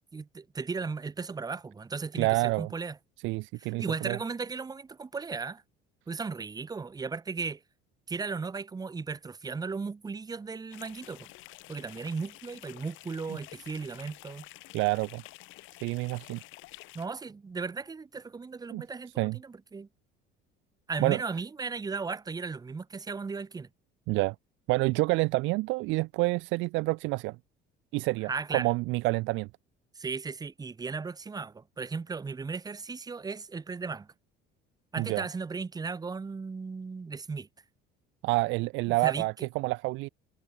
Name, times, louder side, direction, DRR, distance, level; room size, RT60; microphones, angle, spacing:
voice 1, 0.1-3.0 3.6-5.6 6.1-7.6 8.1-11.3 11.7-14.5 16.9-19.9 20.9-23.7 28.2-28.7 30.0-34.1 34.9-37.5 38.9-39.3, right 4 dB, 20° right, 2.2 m, -36 dB
voice 2, 2.1-2.7 3.2-4.2 13.3-13.4 14.7-15.2 15.8-16.4 18.7-18.8 19.2-19.4 21.0-21.2 24.1-24.4 24.7-27.4 27.9-29.5 35.0-35.2 38.2-40.1, right 23 dB, 70° right, 0.5 m, -28 dB
sound 1, 10.7-17.1, left 19 dB, 70° left, 4.3 m, -50 dB
cardioid pair, 130°, 21 cm